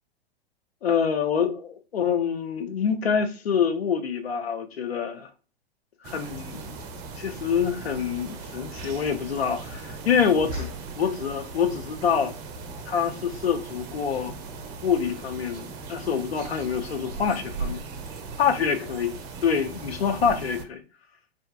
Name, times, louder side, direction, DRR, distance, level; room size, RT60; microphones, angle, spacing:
voice 1, 0.8-5.3 6.0-6.7 7.2-10.7 11.0-12.3 12.9-14.3 14.8-17.8 18.4-19.2 19.4-20.8, left 7 dB, 80° left, 0.5 m, -26 dB
sound 1, 6.0-20.6, right 3 dB, 30° right, 0.5 m, -38 dB
2.5 x 2.3 x 2.4 m
figure-of-eight pair, 100°, 30 cm